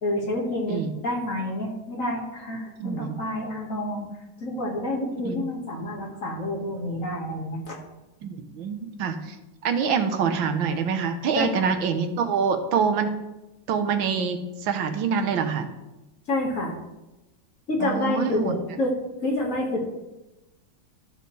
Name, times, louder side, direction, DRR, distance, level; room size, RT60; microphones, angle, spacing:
voice 1, 0.0-4.1 4.4-7.8 11.3-11.7 16.3-16.7 17.7-18.9 19.2-19.9, left 1 dB, 45° left, -1 dB, 1.9 m, -28 dB
voice 2, 2.8-3.2 5.2-5.4 8.2-9.4 9.6-13.1 13.7-15.7 17.8-18.5, right 6 dB, 90° right, 6 dB, 1.6 m, -25 dB
13.0 x 6.8 x 3.2 m, 0.99 s
omnidirectional pair, 2.1 m